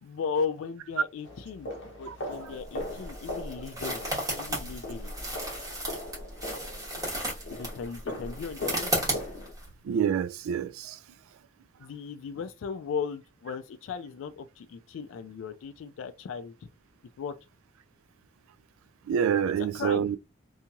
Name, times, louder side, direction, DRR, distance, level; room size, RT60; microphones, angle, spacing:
voice 1, 0.0-1.7 2.0-4.1 4.4-5.1 7.5-8.9 11.8-16.7 17.2-17.3 19.6-20.1, left 6 dB, 70° left, 0.3 m, -36 dB
sound 1, 1.2-9.5, left 1 dB, 55° left, 0.7 m, -40 dB
sound 2, 2.5-9.7, right 1 dB, 20° right, 1.1 m, -34 dB
voice 2, 9.9-11.0 19.1-20.2, right 8 dB, 85° right, 0.3 m, -27 dB
2.9 x 2.7 x 2.3 m
head